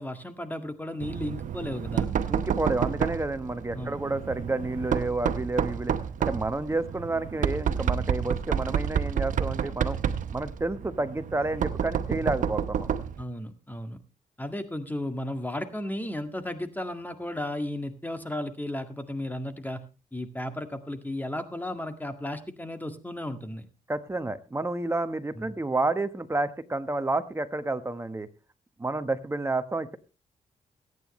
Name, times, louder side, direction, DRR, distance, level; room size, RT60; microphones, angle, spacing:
voice 1, 0.0-2.1 3.7-4.0 13.2-14.0 14.4-19.8 20.1-23.7, left 1 dB, 15° left, 8 dB, 1.8 m, -34 dB
Knock, 1.0-13.2, right 8 dB, 70° right, 0.9 m, -30 dB
voice 2, 2.3-5.9 6.2-10.0 10.3-12.9 23.9-28.3 28.8-30.0, right 2 dB, 20° right, 10 dB, 1.3 m, -30 dB
22.0 x 9.4 x 3.2 m, 0.31 s
cardioid pair, 70°, 14 cm